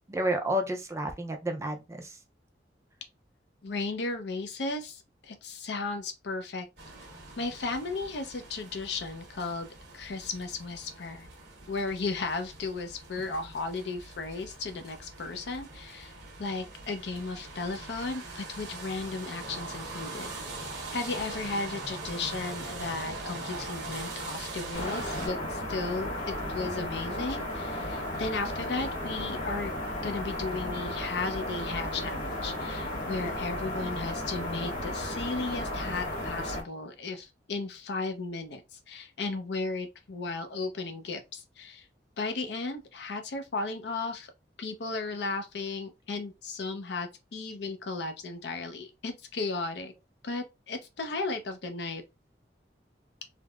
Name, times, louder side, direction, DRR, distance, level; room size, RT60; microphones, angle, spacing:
voice 1, 0.1-2.2, right 1 dB, 15° right, 0.4 m, -30 dB
voice 2, 3.6-6.7 7.4-9.7 9.9-11.3 11.7-16.1 16.4-20.3 20.9-29.7 30.0-41.9 42.2-44.3 44.6-49.9 50.2-52.0, left 3 dB, 65° left, 0.5 m, -35 dB
sound 1, 6.8-25.3, right 2 dB, 65° right, 1.0 m, -42 dB
sound 2, 24.7-36.6, left 1 dB, 45° left, 1.2 m, -34 dB
3.3 x 2.0 x 2.3 m
head